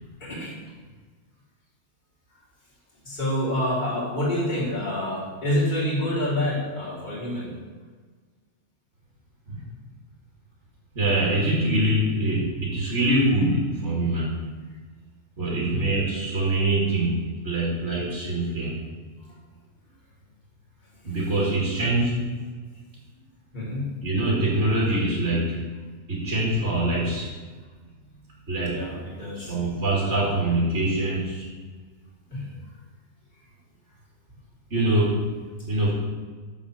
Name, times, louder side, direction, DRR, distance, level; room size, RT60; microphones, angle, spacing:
voice 1, 0.2-0.5 3.0-7.5 15.5-15.9 21.1-21.2 23.5-23.9 28.7-29.5 32.3-32.5, left 1 dB, 35° left, -8 dB, 3.4 m, -27 dB
voice 2, 10.9-14.3 15.4-18.7 21.0-22.1 24.0-25.6 26.1-27.3 28.5-28.8 29.3-31.5 34.7-35.2 35.7-35.9, right 1 dB, 60° right, -5 dB, 2.5 m, -24 dB
7.5 x 7.4 x 6.4 m, 1.5 s
omnidirectional pair, 1.3 m